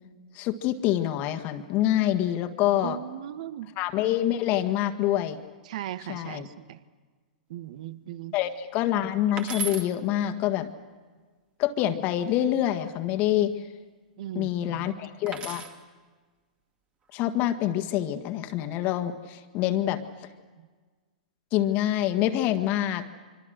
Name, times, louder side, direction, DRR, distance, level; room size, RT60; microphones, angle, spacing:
voice 1, 0.4-3.0 3.8-5.4 6.1-6.5 8.3-10.7 11.6-13.5 14.4-15.6 17.1-20.0 21.5-23.0, left 12 dB, 40° left, 8 dB, 1.6 m, -26 dB
voice 2, 2.8-3.7 5.7-6.8 7.5-8.4 14.2-14.9 20.6-20.7, right 12 dB, 60° right, 14 dB, 1.1 m, -38 dB
sound 1, 9.4-9.9 12.1-12.7 15.3-15.8 17.1-17.6, right 4 dB, 25° right, 2.3 m, -36 dB
25.0 x 24.5 x 6.5 m, 1.4 s
hypercardioid pair, 110°, 4 cm